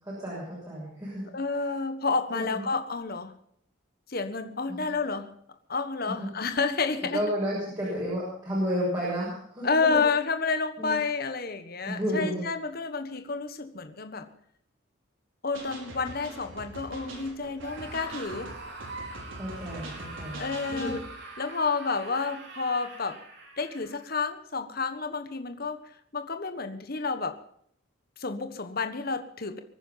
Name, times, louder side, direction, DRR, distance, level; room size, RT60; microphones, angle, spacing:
voice 1, 0.0-1.2 1.6-1.7 2.3-2.6 4.7-4.9 6.1-6.3 7.1-10.0 10.8-11.0 11.9-12.4 19.4-20.4 20.7-20.9, equal, 20° right, -7 dB, 6.8 m, -31 dB
voice 2, 1.3-3.3 4.1-5.3 5.7-7.2 9.6-14.3 15.4-18.5 20.3-21.0 21.4-23.2 23.6-25.8 26.1-27.4 28.2-29.6, left 4 dB, 50° left, 8 dB, 1.4 m, -30 dB
sound 1, 15.5-21.0, right 1 dB, 80° right, 5.1 m, -43 dB
Screaming, 17.6-24.0, right 3 dB, 60° right, 4.9 m, -43 dB
23.5 x 9.9 x 5.7 m, 0.68 s
head